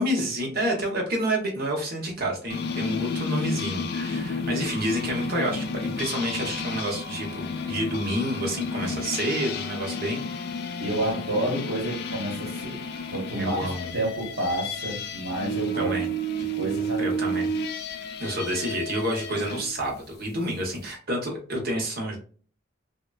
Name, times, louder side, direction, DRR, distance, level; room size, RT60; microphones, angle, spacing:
voice 1, 0.0-10.3 13.4-13.9 15.7-16.1 17.0-17.5 18.2-22.2, right 1 dB, 45° right, 0 dB, 0.8 m, -29 dB
sound 1, 2.5-19.7, left 1 dB, 50° left, 0.3 m, -31 dB
voice 2, 10.8-12.8 13.1-15.9 16.5-17.0, right 1 dB, 70° right, -2 dB, 1.0 m, -29 dB
3.1 x 2.1 x 2.3 m, 0.42 s
head